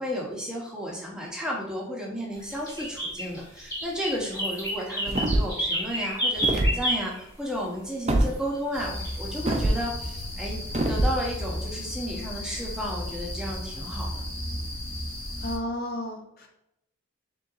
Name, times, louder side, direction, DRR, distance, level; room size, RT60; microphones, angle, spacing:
voice 1, 0.0-10.6 10.9-14.2, equal, 5° right, -3 dB, 0.9 m, -33 dB
sound 1, 2.4-7.2 9.0-9.1, equal, 15° left, 1.3 m, -29 dB
sound 2, 5.1-5.6 6.4-6.8 8.1-8.3 9.5-9.8 10.7-11.2, right 1 dB, 30° right, 0.5 m, -23 dB
sound 3, 8.7-15.6, left 1 dB, 80° left, 1.5 m, -34 dB
voice 2, 15.4-16.5, left 1 dB, 45° left, 2 dB, 0.8 m, -32 dB
4.4 x 3.7 x 2.6 m, 0.80 s
head